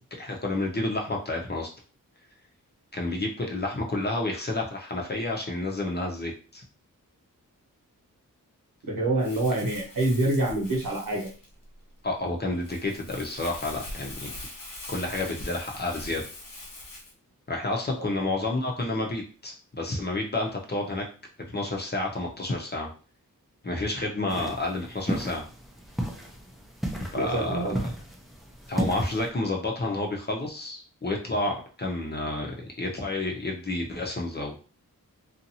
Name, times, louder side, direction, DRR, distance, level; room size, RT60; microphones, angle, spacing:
voice 1, 0.2-1.7 2.9-6.6 12.0-14.3 14.9-16.3 17.5-21.0 21.5-22.9 23.6-25.4 27.1-27.9 28.7-34.6, left 2 dB, 30° left, 0 dB, 0.8 m, -30 dB
voice 2, 8.8-11.3 18.0-18.3 24.3-24.4 27.2-27.8, right 2 dB, 80° right, -2 dB, 1.2 m, -27 dB
Crumpling crinkling, 9.2-17.1, left 2 dB, 80° left, 0.8 m, -42 dB
sound 1, 24.3-29.3, right 1 dB, ahead, 0.6 m, -34 dB
2.7 x 2.5 x 2.7 m, 0.38 s
wide cardioid pair, 75°, 33 cm